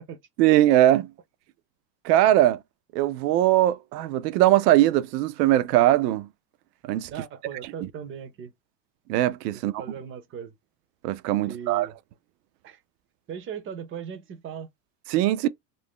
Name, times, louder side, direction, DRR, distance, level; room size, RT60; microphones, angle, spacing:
voice 1, 0.4-1.1 2.0-2.6 2.9-6.3 6.9-7.1 7.8-7.9 9.1-9.8 11.0-11.9 15.1-15.5, right 14 dB, 75° right, 0.6 m, -20 dB
voice 2, 7.1-8.5 9.6-10.5 11.4-11.9 12.6-12.8 13.3-14.7, right 8 dB, 25° right, 0.5 m, -38 dB
2.5 x 2.1 x 3.5 m
hypercardioid pair, 105°, 50 cm